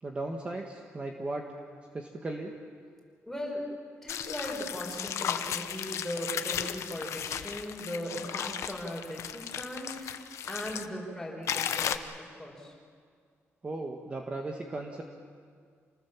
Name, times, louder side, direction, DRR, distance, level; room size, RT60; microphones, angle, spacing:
voice 1, 0.0-1.4 1.9-2.5 13.6-15.0, right 2 dB, 25° right, 2 dB, 1.5 m, -36 dB
voice 2, 3.2-3.7 4.0-10.2 10.5-12.0 12.4-12.7, equal, 5° left, -2 dB, 5.6 m, -38 dB
sound 1, 4.1-10.9 11.5-12.0, left 9 dB, 85° left, 1.0 m, -35 dB
28.5 x 19.5 x 7.3 m, 2.1 s
wide cardioid pair, 140°, 5 cm